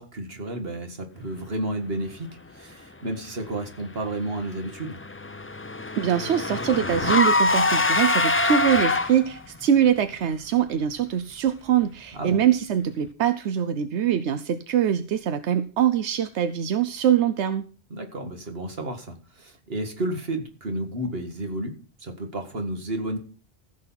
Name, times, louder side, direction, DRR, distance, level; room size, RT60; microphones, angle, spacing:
voice 1, 0.0-2.3 2.5-5.0 12.1-12.4 17.9-21.7 22.0-23.2, right 1 dB, 60° right, 5 dB, 2.1 m, -31 dB
Car / Engine, 4.4-9.4, left 2 dB, 20° left, 0.3 m, -24 dB
voice 2, 6.0-17.7, right 9 dB, 85° right, 10 dB, 1.0 m, -23 dB
15.0 x 6.5 x 5.8 m, 0.40 s
omnidirectional pair, 1.1 m